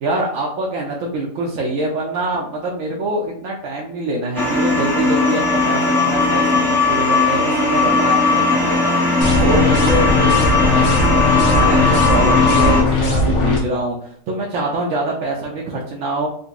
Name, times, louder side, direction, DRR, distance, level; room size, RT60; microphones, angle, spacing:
voice 1, 0.0-11.0 11.5-16.3, right 2 dB, 70° right, -2 dB, 0.9 m, -24 dB
sound 1, 4.4-12.8, left 3 dB, 5° left, 0.3 m, -17 dB
sound 2, 9.2-13.6, left 2 dB, 85° left, 1.4 m, -18 dB
3.9 x 2.6 x 2.4 m, 0.64 s
omnidirectional pair, 1.5 m